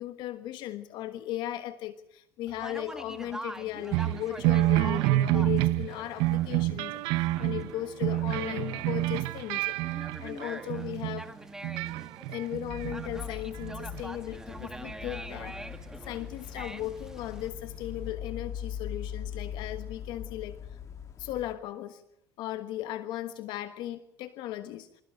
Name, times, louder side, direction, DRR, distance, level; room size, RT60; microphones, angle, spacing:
voice 1, 0.0-11.3 12.3-15.6 16.0-20.8 21.2-22.0 22.4-24.9, left 13 dB, 65° left, 11 dB, 1.3 m, -37 dB
Conversation, 2.5-17.5, right 1 dB, 5° right, 1.8 m, -45 dB
sound 1, 3.9-11.2 11.6-13.2 13.5-14.0 14.9-15.0, right 17 dB, 75° right, 0.8 m, -28 dB
sound 2, 12.6-21.6, left 9 dB, 40° left, 2.8 m, -41 dB
26.5 x 16.0 x 7.7 m, 0.79 s
supercardioid pair, 100°, 8 cm